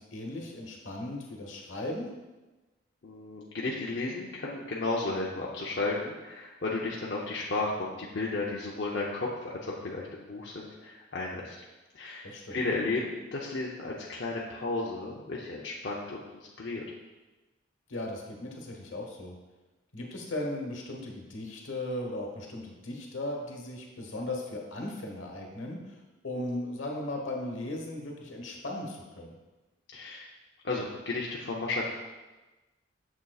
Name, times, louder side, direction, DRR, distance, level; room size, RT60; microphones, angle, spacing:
voice 1, 0.0-2.1 12.2-12.6 17.9-19.3 19.9-26.0 26.2-29.4, left 1 dB, 85° left, 0 dB, 1.2 m, -37 dB
voice 2, 3.0-11.6 11.9-16.8 29.9-30.3 30.6-31.9, left 3 dB, 60° left, -4 dB, 0.6 m, -33 dB
6.9 x 6.6 x 2.4 m, 1.1 s
head